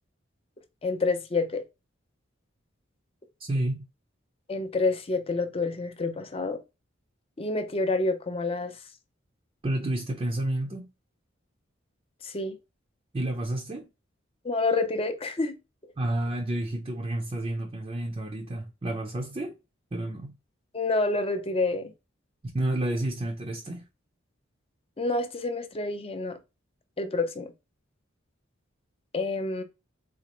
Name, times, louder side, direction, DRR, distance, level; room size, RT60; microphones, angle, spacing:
voice 1, 0.8-1.6 4.5-6.6 7.4-8.7 12.2-12.6 14.4-15.6 20.7-21.9 25.0-26.4 27.0-27.5 29.1-29.6, left 3 dB, 30° left, 0.6 m, -28 dB
voice 2, 3.4-3.8 9.6-10.9 13.1-13.9 16.0-19.6 19.9-20.3 22.5-23.8, right 1 dB, 30° right, 0.5 m, -30 dB
4.1 x 2.4 x 2.9 m
head